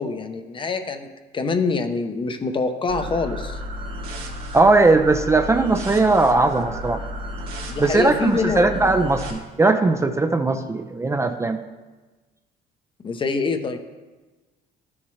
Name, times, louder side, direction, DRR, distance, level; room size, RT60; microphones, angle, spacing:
voice 1, 0.0-3.6 7.7-9.0 13.0-13.8, left 4 dB, 30° left, 8 dB, 0.7 m, -25 dB
sound 1, 2.9-9.3, equal, 65° right, 2.0 m, -33 dB
voice 2, 4.5-7.0 7.8-11.6, right 3 dB, 15° right, 7 dB, 0.4 m, -19 dB
12.0 x 7.2 x 3.2 m, 1.2 s
cardioid pair, 110°, 17 cm